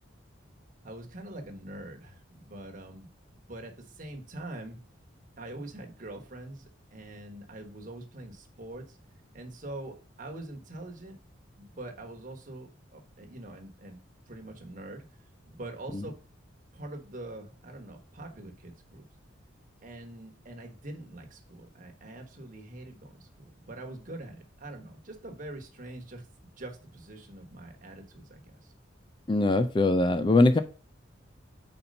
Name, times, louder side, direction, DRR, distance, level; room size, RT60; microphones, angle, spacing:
voice 1, 0.8-3.1 3.5-4.8 5.4-9.0 9.3-11.2 11.6-14.0 14.3-15.0 15.5-16.2 16.7-19.0 19.8-26.3 26.6-28.7, right 1 dB, 40° right, 3 dB, 1.3 m, -44 dB
voice 2, 29.3-30.6, left 2 dB, 25° left, 10 dB, 0.4 m, -22 dB
5.4 x 4.3 x 5.3 m, 0.37 s
head